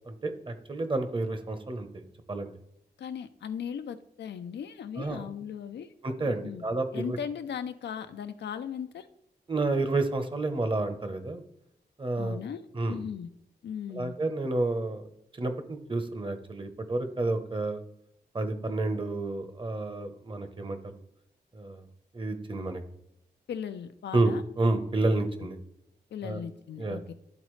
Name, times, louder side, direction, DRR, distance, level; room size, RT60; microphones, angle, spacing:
voice 1, 0.1-2.5 5.0-5.3 6.0-7.2 9.5-11.4 12.0-12.4 12.7-13.0 13.9-15.0 15.3-17.8 18.3-20.8 21.5-21.8 22.1-22.8 24.1-25.6 26.2-26.4 26.8-27.0, right 2 dB, 30° right, 8 dB, 0.9 m, -30 dB
voice 2, 3.0-5.9 6.2-6.6 6.9-9.1 12.2-13.3 13.6-14.1 23.5-24.4 26.1-27.1, left 8 dB, 90° left, 10 dB, 0.5 m, -38 dB
12.0 x 4.0 x 3.2 m, 0.78 s
wide cardioid pair, 105°, 17 cm